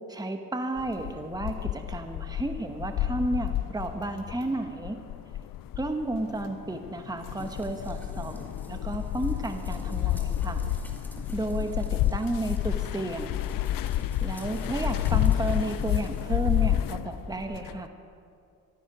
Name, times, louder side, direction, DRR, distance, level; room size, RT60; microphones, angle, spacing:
voice 1, 0.1-5.0 5.8-10.7 11.3-13.4 14.2-17.9, right 2 dB, 10° right, 6 dB, 1.1 m, -32 dB
sound 1, 0.8-17.9, left 13 dB, 75° left, 0.5 m, -30 dB
sound 2, 7.4-16.2, equal, 5° left, 2.3 m, -42 dB
15.0 x 13.5 x 6.1 m, 2.5 s
cardioid pair, 80°, 34 cm